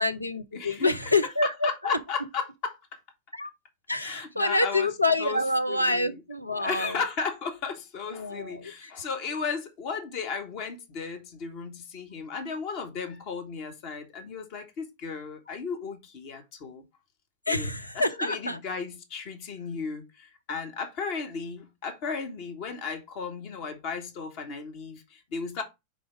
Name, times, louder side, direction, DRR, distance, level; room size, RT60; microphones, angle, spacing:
voice 1, 0.0-2.0 3.3-3.5 3.9-7.0 8.1-8.9 17.5-18.6, left 2 dB, 85° left, 0.7 m, -27 dB
voice 2, 0.5-0.9 1.4-3.0 4.0-4.9 5.2-5.4 5.7-6.1 6.6-16.8 17.5-17.7 18.2-25.6, left 5 dB, 45° left, 1.5 m, -35 dB
4.9 x 4.2 x 4.9 m
figure-of-eight pair, 90°, 0 cm